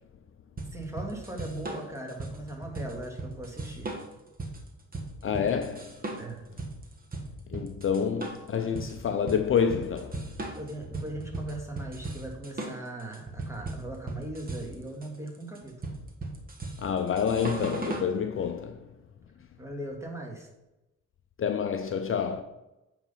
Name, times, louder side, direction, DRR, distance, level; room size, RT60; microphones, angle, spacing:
sound 1, 0.6-18.1, right 2 dB, 30° right, 1.5 m, -37 dB
voice 1, 0.7-3.9 6.2-6.5 10.6-16.0 19.6-20.5, right 1 dB, 10° right, 2.2 m, -39 dB
voice 2, 5.2-5.9 7.5-10.2 16.8-18.9 21.4-22.4, left 7 dB, 45° left, 0.6 m, -28 dB
9.1 x 3.9 x 5.7 m
cardioid pair, 90°, 30 cm